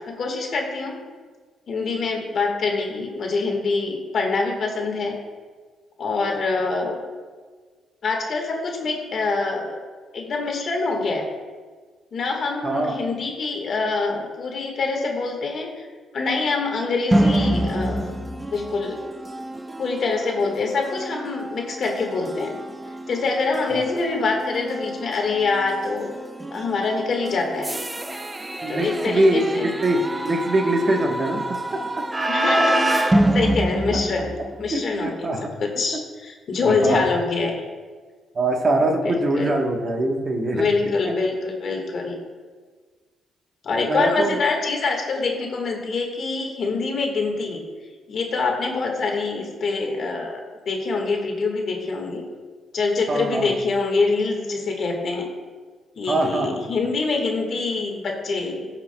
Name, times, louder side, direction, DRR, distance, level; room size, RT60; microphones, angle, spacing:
voice 1, 0.1-1.0 1.7-5.1 6.0-7.0 8.0-9.8 10.1-11.3 12.1-15.8 16.1-18.1 18.5-19.0 19.8-22.5 23.1-26.2 26.5-27.7 28.7-29.7 32.3-34.3 34.6-35.1 35.6-37.6 39.3-39.5 40.5-42.2 43.6-47.6 48.1-52.2 52.7-55.3 56.0-58.7, left 3 dB, 55° left, 1 dB, 1.5 m, -25 dB
sound 1, 17.1-34.8, right 1 dB, 15° right, 0.5 m, -26 dB
voice 2, 28.6-31.4 34.7-35.5 36.6-37.0 38.3-40.7 41.0-41.1 43.8-44.4 53.1-53.5 56.1-56.6, right 1 dB, 40° right, 2 dB, 1.1 m, -23 dB
15.5 x 6.0 x 2.2 m, 1.5 s
cardioid pair, 90°, 0 cm